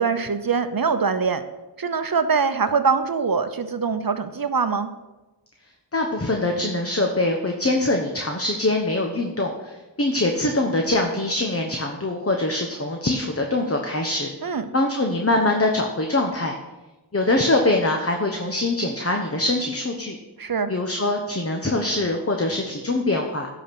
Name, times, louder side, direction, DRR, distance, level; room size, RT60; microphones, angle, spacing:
voice 1, 0.0-1.4 1.8-4.9 14.4-14.7 20.4-20.7, right 5 dB, 55° right, 11 dB, 0.8 m, -23 dB
voice 2, 5.9-14.3 14.7-16.6 17.1-20.2 20.7-23.5, left 2 dB, 35° left, 2 dB, 1.1 m, -23 dB
11.5 x 5.1 x 6.0 m, 1.1 s
wide cardioid pair, 40°, 42 cm